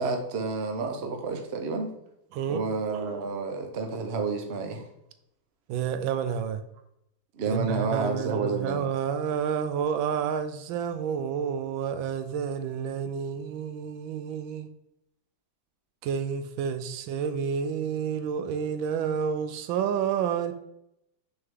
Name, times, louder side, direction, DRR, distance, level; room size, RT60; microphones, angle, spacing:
voice 1, 0.0-1.9 2.5-4.8 7.4-8.8, right 4 dB, 50° right, 4 dB, 0.7 m, -30 dB
voice 2, 2.3-2.6 5.7-6.6 7.5-14.7 16.0-20.5, right 7 dB, 80° right, 10 dB, 1.3 m, -29 dB
6.2 x 4.7 x 3.6 m, 0.81 s
omnidirectional pair, 2.1 m